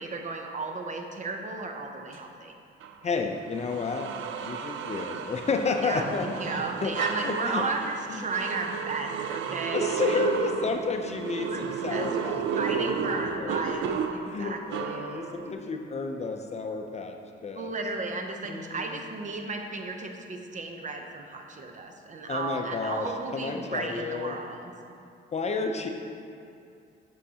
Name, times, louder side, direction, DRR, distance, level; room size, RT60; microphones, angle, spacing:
voice 1, 0.0-2.5 5.8-10.2 11.4-12.1 12.6-15.0 17.5-24.7, right 3 dB, 40° right, 3 dB, 0.7 m, -34 dB
sound 1, 2.8-3.0 3.6-15.5, right 7 dB, 75° right, 0.5 m, -33 dB
voice 2, 3.0-4.1 4.4-6.9 7.2-7.6 8.1-8.2 9.7-12.4 12.7-13.8 14.2-17.1 17.4-17.7 18.5-19.0 22.3-24.4 25.3-25.9, left 4 dB, 35° left, 4 dB, 0.5 m, -31 dB
7.9 x 6.3 x 2.8 m, 2.4 s
cardioid pair, 90°, 20 cm